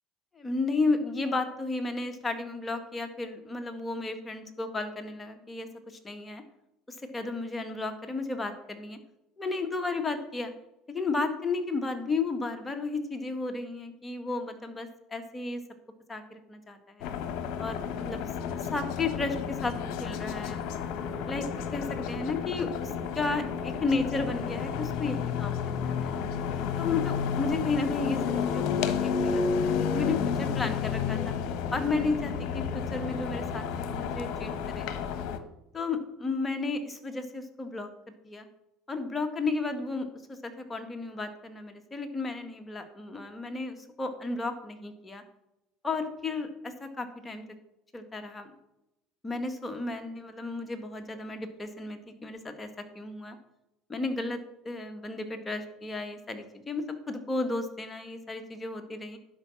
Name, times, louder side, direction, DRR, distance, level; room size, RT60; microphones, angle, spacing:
voice 1, 0.3-6.4 6.9-9.0 9.4-10.5 10.9-15.6 16.1-17.1 17.6-18.2 18.7-20.6 21.3-21.4 21.7-26.1 26.8-29.4 29.9-31.3 31.7-34.9 35.7-38.4 38.9-45.2 45.8-47.4 47.9-48.5 49.2-52.7 52.9-53.4 53.9-54.4 54.6-59.2, left 3 dB, 15° left, 6 dB, 1.7 m, -33 dB
sound 1, 17.0-35.4, left 6 dB, 70° left, 1.1 m, -31 dB
11.5 x 5.3 x 7.2 m, 0.89 s
supercardioid pair, 90°, 0 cm